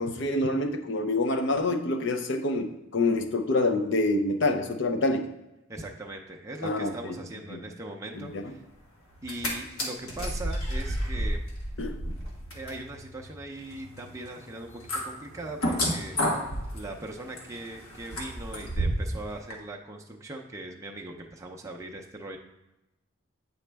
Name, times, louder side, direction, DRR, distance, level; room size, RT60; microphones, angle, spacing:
voice 1, 0.0-5.3 6.6-7.2 7.5-7.6 8.1-8.6 11.8-12.2, left 2 dB, 55° left, 6 dB, 0.6 m, -27 dB
voice 2, 5.7-8.6 9.2-11.4 12.5-22.4, right 2 dB, 15° right, 1 dB, 0.5 m, -40 dB
sound 1, 9.1-9.5 9.8-19.2 19.5-19.6, equal, 80° left, 1.3 m, -32 dB
8.4 x 4.0 x 3.4 m, 0.95 s
head